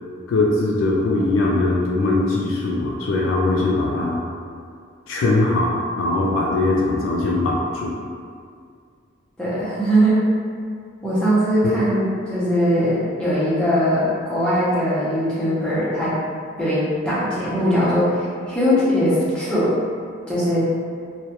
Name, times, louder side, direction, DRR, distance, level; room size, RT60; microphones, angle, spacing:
voice 1, 0.3-4.2 5.1-8.0 11.6-11.7, left 2 dB, 80° left, -3 dB, 0.3 m, -21 dB
voice 2, 9.4-10.2 11.0-16.1 16.6-19.7 20.3-20.6, equal, 5° left, -11 dB, 0.6 m, -20 dB
2.2 x 2.0 x 2.8 m, 2.2 s
head